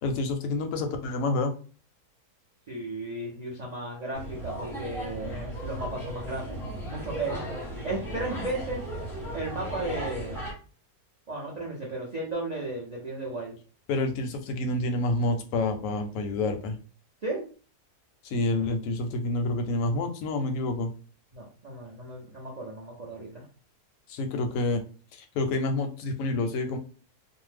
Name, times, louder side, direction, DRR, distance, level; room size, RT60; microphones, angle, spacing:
voice 1, 0.0-1.5 13.9-16.8 18.2-20.9 24.1-24.8 25.1-26.8, left 2 dB, 70° left, 6 dB, 0.8 m, -28 dB
voice 2, 2.7-7.4 7.8-8.8 9.3-10.4 11.3-13.5 17.2-17.5 21.3-23.4, right 2 dB, 55° right, -3 dB, 0.4 m, -35 dB
sound 1, 4.1-10.5, equal, ahead, 0.7 m, -36 dB
2.6 x 2.1 x 3.3 m, 0.37 s
omnidirectional pair, 1.7 m